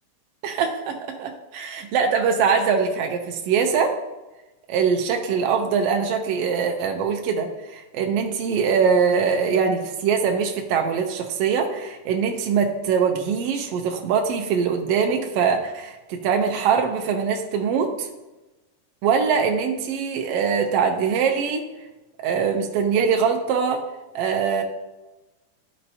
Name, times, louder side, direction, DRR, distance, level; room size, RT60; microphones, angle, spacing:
voice 1, 0.4-4.0 4.7-18.1 19.0-21.7 22.2-23.8 24.1-24.6, right 6 dB, 80° right, 3 dB, 1.4 m, -22 dB
12.5 x 4.3 x 2.7 m, 1.1 s
omnidirectional pair, 3.4 m